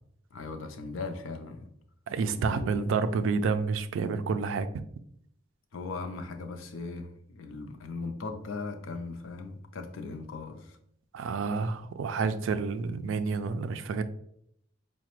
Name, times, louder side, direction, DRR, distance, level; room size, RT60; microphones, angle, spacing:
voice 1, 0.3-1.7 2.3-2.7 5.7-10.8, left 3 dB, 80° left, 6 dB, 0.5 m, -38 dB
voice 2, 2.1-4.7 11.1-14.0, right 4 dB, 70° right, 11 dB, 0.3 m, -29 dB
4.8 x 2.1 x 2.9 m, 0.71 s
head